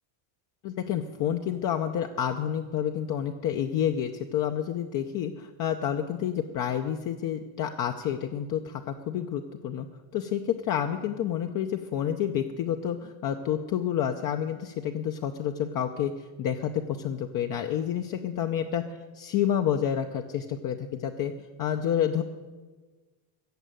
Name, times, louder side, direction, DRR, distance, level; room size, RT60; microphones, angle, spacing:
voice 1, 0.6-9.9 10.1-16.1 16.4-18.8 19.2-21.3 21.6-22.2, left 9 dB, 40° left, 5 dB, 0.7 m, -29 dB
15.0 x 7.8 x 9.2 m, 1.3 s
cardioid pair, 160°, 50 cm